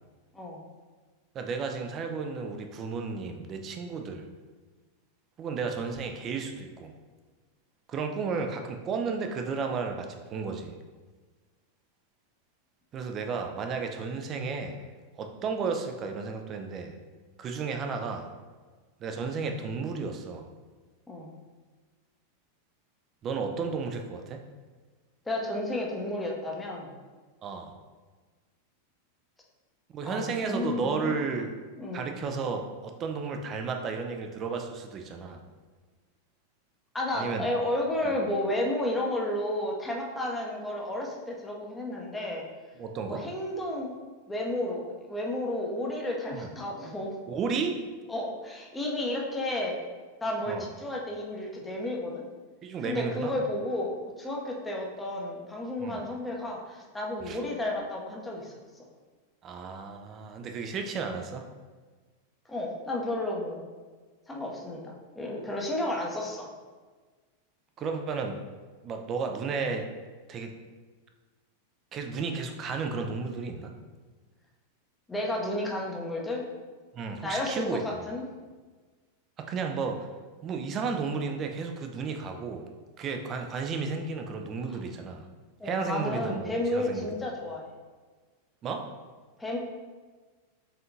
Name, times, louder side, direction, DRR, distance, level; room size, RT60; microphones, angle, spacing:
voice 1, 1.3-4.3 5.4-6.9 7.9-10.8 12.9-14.9 15.2-16.9 17.4-18.3 19.0-20.5 23.2-24.4 27.4-27.7 29.9-31.5 31.9-35.4 37.1-37.5 42.8-43.2 46.3-46.5 47.3-47.8 50.5-50.7 52.6-53.3 55.8-56.0 57.2-57.4 59.4-61.4 67.8-68.4 68.8-69.9 70.3-70.5 71.9-73.7 76.9-78.1 79.4-80.1 80.4-82.7 83.0-85.2 85.6-87.1 88.6-88.9, right 5 dB, 30° right, 4 dB, 0.4 m, -33 dB
voice 2, 25.3-26.9 30.0-31.2 31.8-32.1 36.9-42.4 43.1-43.9 44.3-47.2 48.1-49.8 50.2-52.2 52.8-58.5 62.5-63.6 64.3-66.5 75.1-76.4 77.2-78.3 84.7-84.8 85.6-87.7 89.4-89.6, left 1 dB, 10° left, -1 dB, 0.7 m, -32 dB
4.1 x 3.7 x 2.7 m, 1.4 s
figure-of-eight pair, 90°, 0 cm